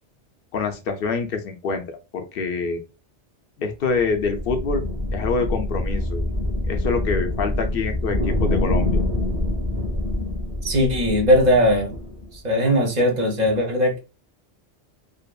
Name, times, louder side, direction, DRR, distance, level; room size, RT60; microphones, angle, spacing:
voice 1, 0.5-1.8 2.1-2.8 3.6-4.8 5.1-6.3 6.7-9.0, left 4 dB, 65° left, 0.7 m, -25 dB
sound 1, 4.0-12.4, left 1 dB, 25° left, 0.7 m, -25 dB
voice 2, 10.6-11.9 12.4-14.0, equal, 45° right, 0.8 m, -19 dB
2.6 x 2.5 x 2.2 m
omnidirectional pair, 1.1 m